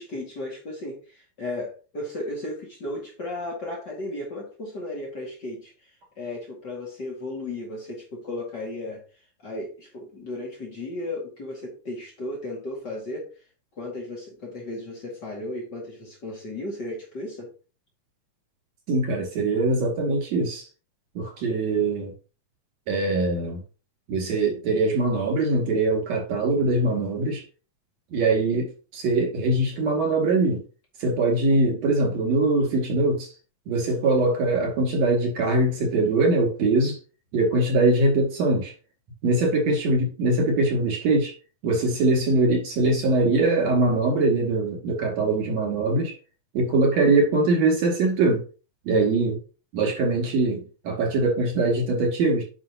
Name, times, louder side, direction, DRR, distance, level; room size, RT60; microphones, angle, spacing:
voice 1, 0.0-5.7 6.2-9.0 9.4-13.3 13.8-17.5, left 2 dB, 40° left, 2.5 m, -35 dB
voice 2, 18.9-20.7 21.2-22.1 22.9-23.6 24.1-27.4 28.1-30.6 31.0-33.3 33.7-37.0 37.3-38.7 39.2-41.3 41.6-46.1 46.5-48.4 48.9-49.4 49.7-52.4, right 2 dB, 65° right, 3.6 m, -22 dB
9.6 x 5.9 x 2.9 m
omnidirectional pair, 3.4 m